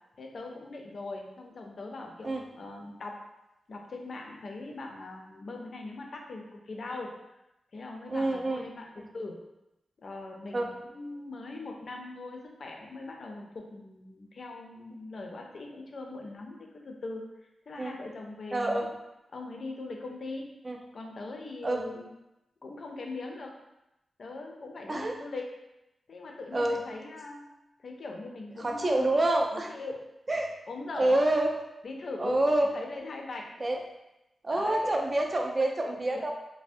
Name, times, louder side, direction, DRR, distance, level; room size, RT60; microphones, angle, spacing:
voice 1, 0.2-3.2 3.7-7.1 7.7-9.4 10.0-17.2 17.7-18.9 19.3-20.5 20.9-22.1 22.6-23.5 24.2-25.5 26.1-27.5 27.8-29.1 29.5-30.0 30.7-31.3 31.8-33.5 34.5-35.0 35.8-36.3, left 2 dB, 60° left, 1 dB, 0.5 m, -41 dB
voice 2, 8.1-8.6 10.5-10.7 17.8-17.9 18.5-18.9 20.7-20.8 21.6-21.8 24.9-25.1 26.5-26.8 28.6-29.7 30.3-30.5 30.9-31.5 32.2-32.7 33.6-33.8 34.4-36.3, right 1 dB, 35° right, 1 dB, 0.4 m, -27 dB
3.3 x 2.0 x 2.5 m, 0.92 s
wide cardioid pair, 90°, 0 cm